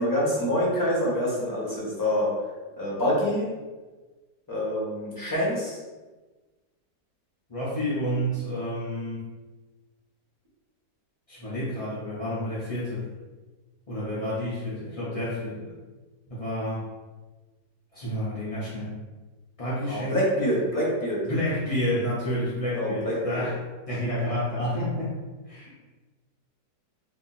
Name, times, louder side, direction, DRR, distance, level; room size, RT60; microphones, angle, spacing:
voice 1, 0.0-2.3 2.8-3.5 4.5-5.8 19.8-21.2 22.7-23.4, left 1 dB, 15° left, -7 dB, 0.9 m, -26 dB
voice 2, 7.5-9.3 11.3-13.0 13.9-15.7 16.3-16.8 17.9-19.0 19.6-20.2 21.3-23.6 23.9-25.1 25.5-25.7, equal, 45° left, -9 dB, 0.4 m, -29 dB
2.8 x 2.7 x 4.0 m, 1.2 s
omnidirectional pair, 1.8 m